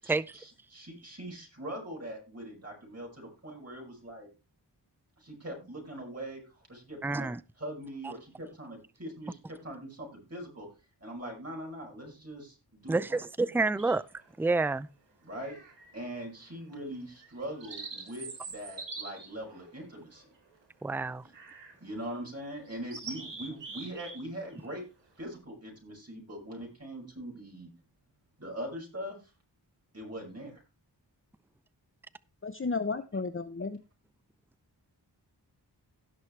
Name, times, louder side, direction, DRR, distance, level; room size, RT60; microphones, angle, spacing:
voice 1, 0.0-4.3 5.2-10.7 11.0-13.2 15.2-15.6 15.9-20.2 21.2-21.3 21.8-24.8 25.2-27.7 28.4-29.3 29.9-30.6, right 1 dB, 35° right, 6.2 m, -42 dB
voice 2, 7.0-7.4 12.9-14.0 14.4-14.9 20.8-21.2, right 3 dB, 5° right, 0.5 m, -28 dB
sound 1, 13.8-14.3 15.4-16.1 16.5-16.6 17.2-20.6 21.3-21.8 22.2-22.3 22.7-24.2 24.5-24.8, right 4 dB, 85° right, 3.3 m, -44 dB
voice 3, 32.4-33.8, left 4 dB, 30° left, 0.8 m, -33 dB
17.0 x 6.1 x 3.3 m
cardioid pair, 45°, 43 cm